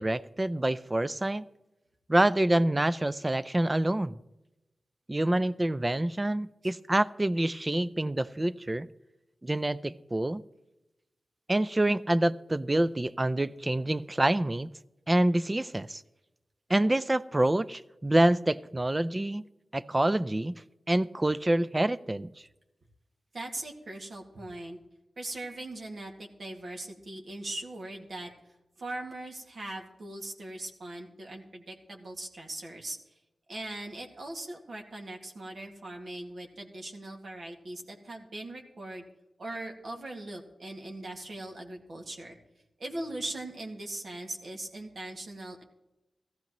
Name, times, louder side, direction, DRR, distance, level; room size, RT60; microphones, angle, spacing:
voice 1, 0.0-1.4 2.1-4.2 5.1-8.9 9.4-10.4 11.5-14.7 15.1-16.0 16.7-19.4 19.7-20.5 20.9-22.3, right 1 dB, 25° right, 0.4 m, -27 dB
voice 2, 23.3-24.8 25.2-28.3 28.8-33.0 33.5-39.0 39.4-42.4 42.8-45.6, right 1 dB, 65° right, 2.0 m, -40 dB
16.5 x 14.0 x 3.0 m
cardioid pair, 65°, 0 cm